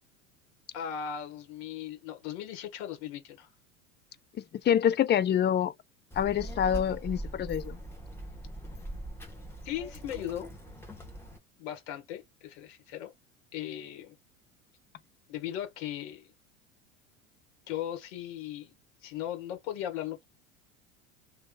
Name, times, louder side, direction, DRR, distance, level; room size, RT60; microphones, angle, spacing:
voice 1, 0.7-3.5 9.6-10.5 11.6-13.1 13.5-14.1 15.3-16.3 17.7-18.7 19.0-20.2, left 10 dB, 65° left, 1.5 m, -37 dB
voice 2, 4.6-5.7 6.2-7.8, left 9 dB, 25° left, 0.6 m, -26 dB
Child speech kid speaking, 6.1-11.4, right 1 dB, 5° left, 1.2 m, -41 dB
3.0 x 2.6 x 3.8 m
hypercardioid pair, 80°, 38 cm